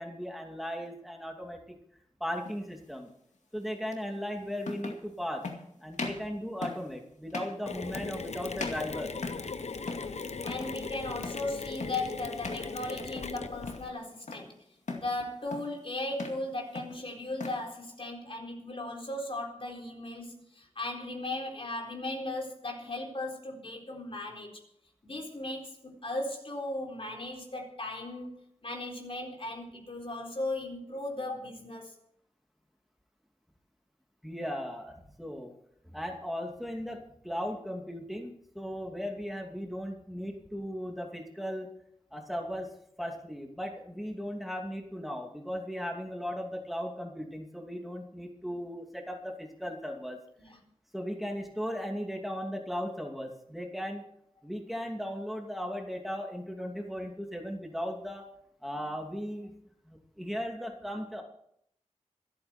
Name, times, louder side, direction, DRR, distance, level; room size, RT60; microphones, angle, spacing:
voice 1, 0.0-1.8 2.2-3.1 3.5-5.5 5.8-9.1 34.2-35.5 35.9-41.7 42.1-42.7 43.0-50.2 50.9-54.0 54.4-58.3 58.6-59.5 59.9-61.2, equal, ahead, 1 dB, 2.6 m, -37 dB
sound 1, 2.4-2.6 3.9-4.0 4.6-5.0 5.4-5.6 5.9-6.3 6.6-6.9 7.3-7.6 7.9-8.3 8.6-9.5 9.8-10.1 10.4-10.7 11.2-11.5 11.8-12.1 12.4-12.7 13.0-13.4 13.7-14.5 14.9-15.1 15.5-15.8 16.1-16.4 16.7-17.6, left 3 dB, 80° left, 2.2 m, -39 dB
Mechanisms, 7.7-13.9, left 4 dB, 65° left, 0.9 m, -39 dB
voice 2, 10.4-14.5 14.9-24.6 25.0-28.3 28.6-32.0 50.4-50.6, left 2 dB, 50° left, 0 dB, 4.1 m, -37 dB
26.0 x 8.9 x 4.4 m, 0.71 s
wide cardioid pair, 85°, 12 cm